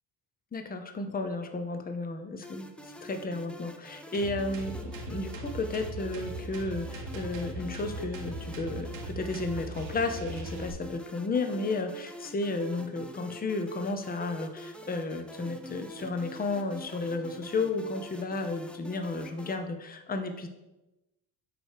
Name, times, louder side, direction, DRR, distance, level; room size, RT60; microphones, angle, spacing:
voice 1, 0.5-2.7 3.0-20.5, left 3 dB, 20° left, 7 dB, 0.7 m, -33 dB
sound 1, 2.4-19.6, equal, 5° left, 0.4 m, -47 dB
sound 2, 4.1-10.7, right 1 dB, 70° right, 1.3 m, -39 dB
8.7 x 3.3 x 4.8 m, 0.98 s
cardioid pair, 105°, 45 cm